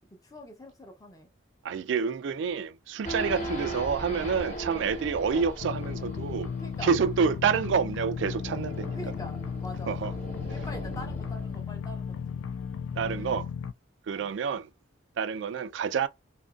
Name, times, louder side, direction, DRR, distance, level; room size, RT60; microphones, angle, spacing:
voice 1, 0.1-1.3 3.4-3.7 6.6-6.9 8.9-10.2 10.5-12.5 14.1-14.3, left 1 dB, 20° left, 0.7 m, -44 dB
voice 2, 1.6-6.5 6.8-9.0 9.9-10.1 13.0-13.5 14.1-14.7 15.2-16.1, right 6 dB, 70° right, 0.3 m, -28 dB
Race car auto racing / Idling / Accelerating revving vroom, 3.0-11.6, right 1 dB, 35° left, 1.0 m, -39 dB
sound 1, 5.6-13.7, left 6 dB, 85° left, 0.3 m, -35 dB
2.8 x 2.5 x 2.3 m
head